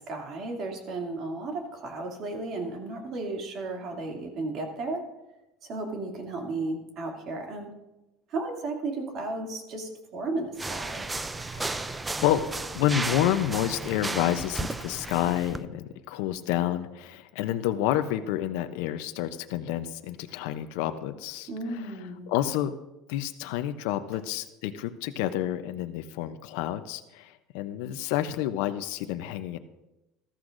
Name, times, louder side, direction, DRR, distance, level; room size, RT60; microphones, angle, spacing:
voice 1, 0.0-5.0 5.6-7.7 8.3-11.1 21.5-22.3, right 2 dB, 50° right, 1 dB, 2.5 m, -34 dB
sound 1, 10.6-15.6, right 3 dB, 15° right, 0.4 m, -34 dB
voice 2, 11.4-12.5 12.7-22.7 23.1-29.6, left 12 dB, 75° left, 9 dB, 0.6 m, -29 dB
14.5 x 13.5 x 2.6 m, 0.98 s
supercardioid pair, 105°, 0 cm